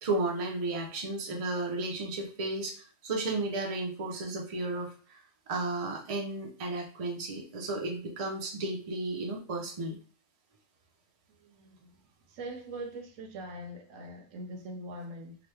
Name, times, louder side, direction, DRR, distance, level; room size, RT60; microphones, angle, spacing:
voice 1, 0.0-10.0, right 2 dB, 45° right, 0 dB, 0.4 m, -33 dB
voice 2, 11.3-15.4, right 1 dB, 75° right, 4 dB, 1.0 m, -43 dB
2.9 x 2.2 x 3.2 m, 0.41 s
omnidirectional pair, 1.4 m